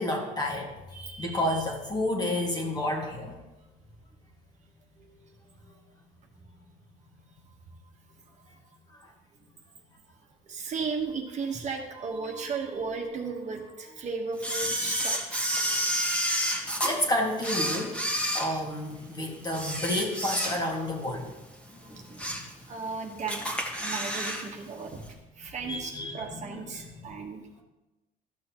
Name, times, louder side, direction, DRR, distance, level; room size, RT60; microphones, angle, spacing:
voice 1, 0.0-3.3 8.9-9.1 16.8-18.0 18.3-21.3 21.9-22.0 22.3-22.4 25.6-26.6 26.9-27.1, left 1 dB, 25° left, 0 dB, 1.8 m, -30 dB
voice 2, 5.0-5.3 5.6-5.8 10.4-15.9 20.4-20.6 21.9-22.3 22.7-23.5 23.8-25.1 25.4-27.6, right 4 dB, 45° right, 2 dB, 1.3 m, -36 dB
Camera, 14.4-16.9 17.4-19.0 19.5-20.9 21.2-21.4 21.9-22.5 22.8-22.9 23.3-24.4 24.7-24.8, equal, 5° left, 1.6 m, -30 dB
13.5 x 6.4 x 3.0 m, 1.0 s
cardioid pair, 110°, 17 cm